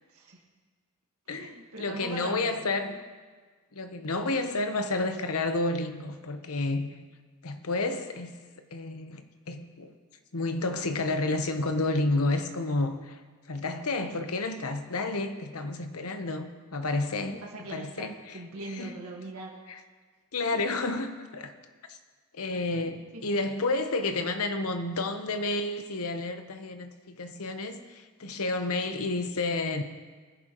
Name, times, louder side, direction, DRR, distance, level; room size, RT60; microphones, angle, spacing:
voice 1, 0.1-0.4 1.3-3.0 17.4-19.6 20.5-20.6 23.1-23.4, right 2 dB, 80° right, -2 dB, 1.6 m, -42 dB
voice 2, 1.3-3.0 3.7-6.9 7.4-8.4 8.7-9.9 10.3-13.2 13.5-17.4 17.7-18.4 18.8-18.9 20.3-21.5 21.9-22.0 22.3-29.8, left 2 dB, 80° left, 7 dB, 0.9 m, -30 dB
20.0 x 10.5 x 3.0 m, 1.5 s
head